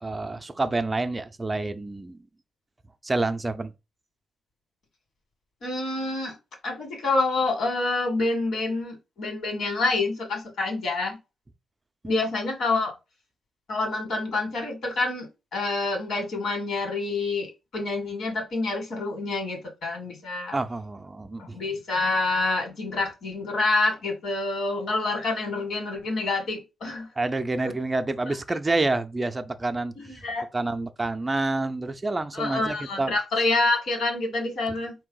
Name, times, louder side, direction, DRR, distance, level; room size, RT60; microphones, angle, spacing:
voice 1, 0.0-2.2 3.0-3.7 20.5-21.6 27.2-30.2 30.5-33.1 34.7-34.8, right 2 dB, 15° right, 0.4 m, -28 dB
voice 2, 5.6-6.4 6.6-11.2 12.0-12.9 13.7-15.3 15.5-17.5 17.7-20.5 21.4-27.1 27.6-27.7 28.3-28.4 30.0-30.4 32.3-34.9, left 3 dB, 70° left, 1.7 m, -27 dB
4.4 x 2.7 x 3.8 m
cardioid pair, 120°, 0 cm